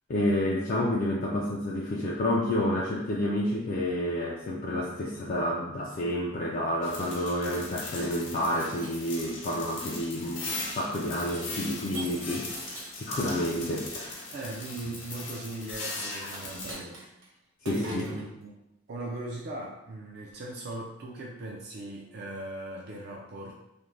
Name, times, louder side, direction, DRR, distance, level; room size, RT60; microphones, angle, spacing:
voice 1, 0.1-14.3 17.6-18.1, left 1 dB, 45° left, -3 dB, 0.3 m, -29 dB
sound 1, 6.8-16.7, left 2 dB, 65° left, 0.7 m, -39 dB
Shatter, 8.4-9.8 10.4-10.8 11.9-13.1 16.3-17.3 17.6-18.3, right 2 dB, 80° right, 0.7 m, -44 dB
voice 2, 14.3-17.0 17.7-18.5 18.9-23.5, right 1 dB, 55° right, -1 dB, 0.4 m, -39 dB
2.5 x 2.1 x 3.1 m, 0.88 s
head